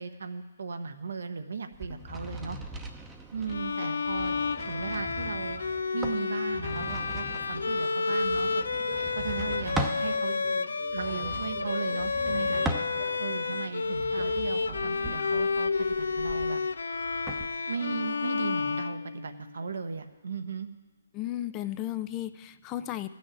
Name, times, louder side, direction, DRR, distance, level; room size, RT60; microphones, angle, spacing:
voice 1, 0.0-2.6 3.3-4.4 4.7-5.6 5.9-8.6 9.1-10.4 10.9-12.6 13.2-16.6 17.7-20.7, right 5 dB, 75° right, 8 dB, 1.0 m, -36 dB
sound 1, 1.7-10.1 10.9-13.3 13.8-17.5, right 1 dB, 10° right, 0.8 m, -39 dB
Bowed string instrument, 3.5-19.4, left 4 dB, 85° left, 0.5 m, -30 dB
sound 2, 7.8-15.5, right 4 dB, 30° right, 1.2 m, -45 dB
voice 2, 21.1-23.1, left 13 dB, 25° left, 11 dB, 0.4 m, -34 dB
14.0 x 6.3 x 8.8 m, 1.3 s
hypercardioid pair, 150°, 0 cm